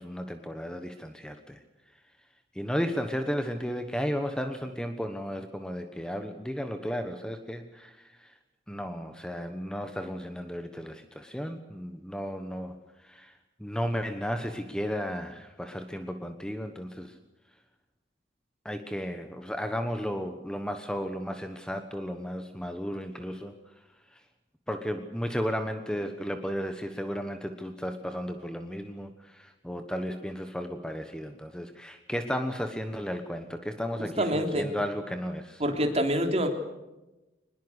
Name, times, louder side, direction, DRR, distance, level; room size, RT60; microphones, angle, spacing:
voice 1, 0.0-1.6 2.5-8.3 8.7-12.8 13.0-13.3 13.6-17.1 18.6-23.5 24.7-35.6, equal, 5° left, 7 dB, 1.2 m, -34 dB
voice 2, 33.9-34.7 35.6-36.5, equal, 35° right, 4 dB, 3.3 m, -26 dB
23.0 x 20.5 x 8.2 m, 1.0 s
head